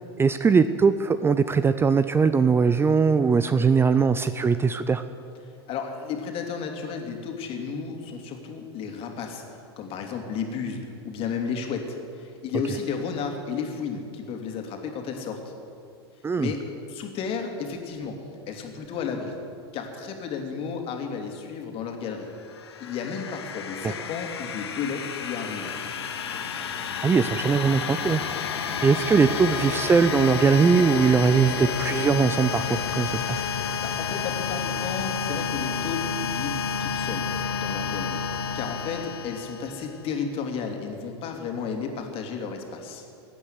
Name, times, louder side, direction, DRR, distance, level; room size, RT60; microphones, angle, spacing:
voice 1, 0.2-5.0 16.2-16.5 27.0-28.2 28.8-33.4, right 5 dB, 15° right, 12 dB, 0.6 m, -21 dB
voice 2, 5.7-15.5 16.4-18.1 18.5-19.4 19.7-22.3 22.8-25.7 33.8-37.3 37.5-38.2 38.5-43.0, left 6 dB, 45° left, 3 dB, 2.7 m, -33 dB
sound 1, 22.3-40.0, left 6 dB, 80° left, 1.5 m, -30 dB
16.0 x 9.0 x 9.6 m, 2.4 s
hypercardioid pair, 90°, 13 cm